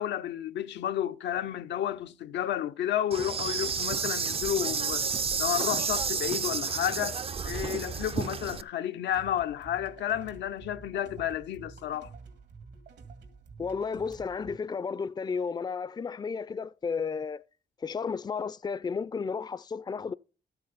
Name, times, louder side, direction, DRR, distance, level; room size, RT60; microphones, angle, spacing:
voice 1, 0.0-5.1 5.4-7.2 7.5-12.1, left 11 dB, 80° left, 0.6 m, -31 dB
Insect, 3.1-8.6, right 6 dB, 35° right, 0.5 m, -31 dB
sound 1, 9.1-14.6, right 4 dB, 75° right, 2.1 m, -49 dB
voice 2, 13.6-17.4 17.8-20.1, left 5 dB, 25° left, 0.4 m, -33 dB
12.5 x 7.9 x 4.0 m
cardioid pair, 70°, 18 cm